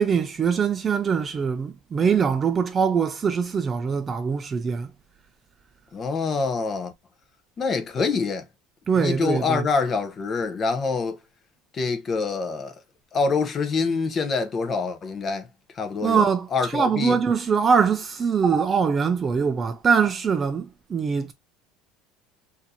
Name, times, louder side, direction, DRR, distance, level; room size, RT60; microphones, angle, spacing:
voice 1, 0.0-4.9 8.9-9.7 16.0-21.3, right 6 dB, 20° right, 0.3 m, -23 dB
voice 2, 5.9-6.9 7.6-8.4 8.9-11.2 11.7-12.7 13.1-15.5 15.8-16.2 16.5-17.2, left 4 dB, 25° left, 0.7 m, -25 dB
4.4 x 2.6 x 2.6 m
cardioid pair, 155°, 0 cm